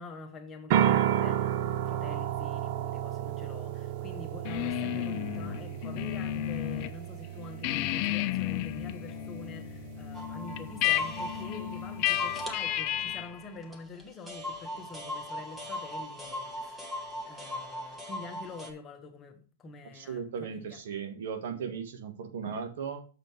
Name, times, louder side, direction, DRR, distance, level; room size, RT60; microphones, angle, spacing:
voice 1, 0.0-1.5 1.8-20.8, left 3 dB, 20° left, 1.4 m, -46 dB
sound 1, 0.7-12.5, right 11 dB, 50° right, 0.6 m, -33 dB
sound 2, 4.4-6.9 7.2-13.4, left 15 dB, 45° left, 0.5 m, -32 dB
sound 3, 10.1-18.7, left 1 dB, 10° right, 1.3 m, -39 dB
voice 2, 19.9-23.0, right 6 dB, 70° right, 1.5 m, -37 dB
7.0 x 5.6 x 4.6 m
hypercardioid pair, 135°, 0 cm